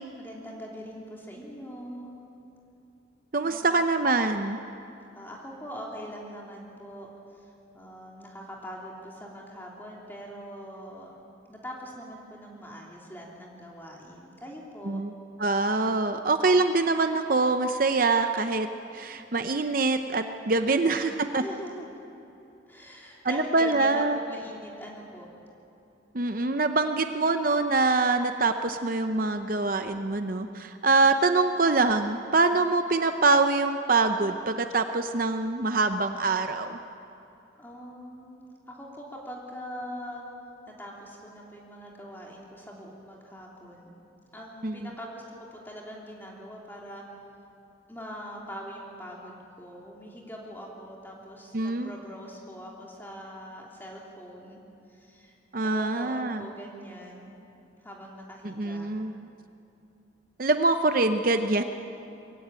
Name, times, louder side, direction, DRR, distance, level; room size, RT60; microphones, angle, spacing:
voice 1, 0.2-2.1 3.4-3.7 5.1-7.1 7.3-11.1 11.5-15.0 20.7-21.9 22.7-25.3 37.6-40.2 40.8-43.9 44.3-45.2 45.5-47.0 47.9-54.6 54.9-55.3 55.6-57.4 57.8-58.9, equal, 10° left, -3 dB, 3.1 m, -42 dB
voice 2, 3.3-4.6 14.9-15.1 15.4-18.7 18.9-21.4 23.2-24.2 26.1-36.8 44.6-44.9 51.5-51.9 55.5-56.5 58.4-59.3 60.4-61.6, right 3 dB, 45° right, 7 dB, 0.7 m, -24 dB
23.0 x 16.0 x 8.9 m, 2.8 s
head